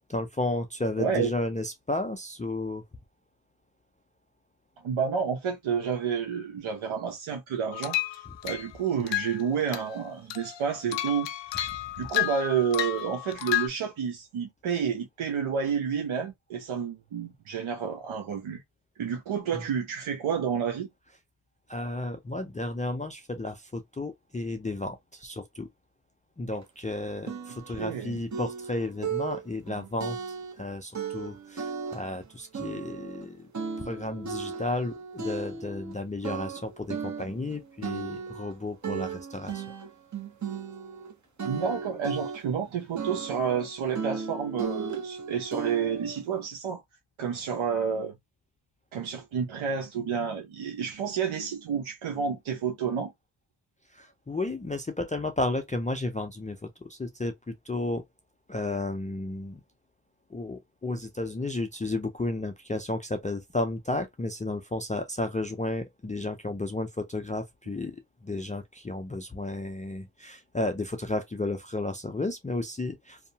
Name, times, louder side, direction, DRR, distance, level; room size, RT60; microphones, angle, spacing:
voice 1, 0.1-2.8 19.5-19.6 21.7-25.7 26.4-30.2 30.6-33.5 33.8-39.6 53.9-58.0 58.5-59.6 60.3-73.2, left 2 dB, 15° left, 0.4 m, -33 dB
voice 2, 1.0-1.3 4.8-18.6 19.0-20.9 27.8-28.2 41.4-46.8 47.2-48.1 48.9-53.1, right 7 dB, 85° right, 0.7 m, -30 dB
sound 1, 7.7-8.7 9.1-9.4 9.7-10.0 10.3-13.7, left 15 dB, 65° left, 0.5 m, -31 dB
sound 2, 26.6-26.7 27.3-28.0 28.3-30.6 30.9-32.3 32.5-36.0 36.2-41.1 41.4-42.7 43.0-46.2, right 6 dB, 40° right, 0.8 m, -36 dB
2.7 x 2.0 x 2.7 m
cardioid pair, 70°, 47 cm